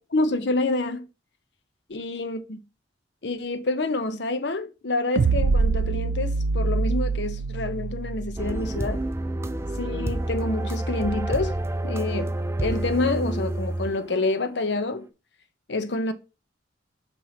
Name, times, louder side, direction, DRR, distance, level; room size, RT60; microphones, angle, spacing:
voice 1, 0.1-1.1 1.9-2.6 3.2-9.0 9.8-11.6 11.8-15.1 15.7-16.1, left 2 dB, 65° left, 0.8 m, -27 dB
sound 1, 5.2-8.6, right 4 dB, 90° right, 0.4 m, -24 dB
sound 2, 8.4-14.4, right 1 dB, 15° right, 0.4 m, -29 dB
5.7 x 4.5 x 4.3 m
head